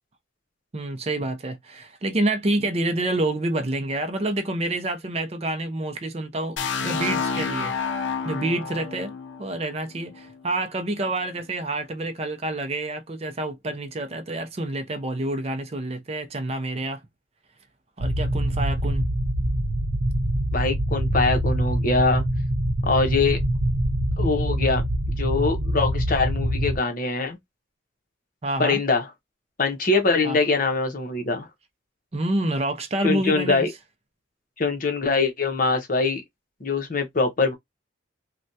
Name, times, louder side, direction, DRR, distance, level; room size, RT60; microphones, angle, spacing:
voice 1, 0.7-6.6 6.8-17.0 18.0-19.1 28.4-28.8 30.2-30.4 32.1-33.7, right 2 dB, 30° right, 0.5 m, -28 dB
sound 1, 6.6-10.4, left 5 dB, 65° left, 0.5 m, -29 dB
sound 2, 18.0-26.8, right 1 dB, 85° right, 0.6 m, -24 dB
voice 2, 20.5-22.2 22.8-23.4 24.2-24.8 25.2-27.4 28.6-29.1 29.6-31.5 33.0-33.7 34.6-36.2 36.6-37.5, left 3 dB, 45° left, 0.8 m, -23 dB
3.3 x 2.2 x 2.7 m
head